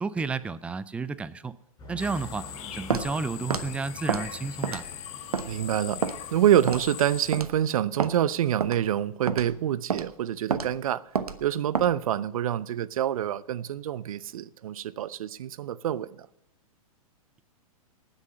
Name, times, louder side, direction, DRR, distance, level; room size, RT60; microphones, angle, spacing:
voice 1, 0.0-1.6 1.9-2.5 2.7-4.8, right 4 dB, 5° right, 0.4 m, -31 dB
sound 1, 1.8-6.9, left 2 dB, 20° left, 5.1 m, -46 dB
sound 2, 2.0-7.4, left 10 dB, 35° left, 1.5 m, -41 dB
Walk footsteps, 2.9-3.1 3.5-3.7 4.1-4.3 4.6-4.9 5.3-5.5 6.0-6.2 6.7-6.9 7.3-7.5 8.0-8.1 8.6-8.8 9.3-9.5 9.9-10.1 10.5-10.7 11.2-11.4 11.7-11.9, right 6 dB, 90° right, 0.9 m, -28 dB
voice 2, 5.5-6.0 6.3-11.0 11.4-16.3, right 11 dB, 70° right, 0.6 m, -26 dB
18.5 x 6.5 x 5.5 m
hypercardioid pair, 120°, 19 cm